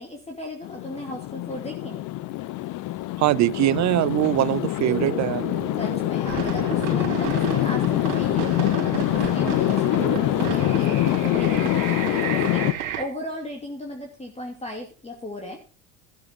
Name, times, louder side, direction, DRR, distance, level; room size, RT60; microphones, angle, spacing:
voice 1, 0.0-2.0 4.4-4.5 5.8-11.1 11.3-15.6, left 1 dB, 15° left, 2.7 m, -36 dB
sound 1, 0.6-12.7, left 16 dB, 50° left, 0.7 m, -25 dB
voice 2, 3.2-5.4, right 15 dB, 45° right, 0.7 m, -22 dB
sound 2, 4.8-12.7, right 9 dB, 25° right, 1.0 m, -39 dB
sound 3, 6.2-13.0, right 10 dB, 85° right, 2.5 m, -32 dB
13.5 x 7.9 x 5.2 m
supercardioid pair, 85°, 40 cm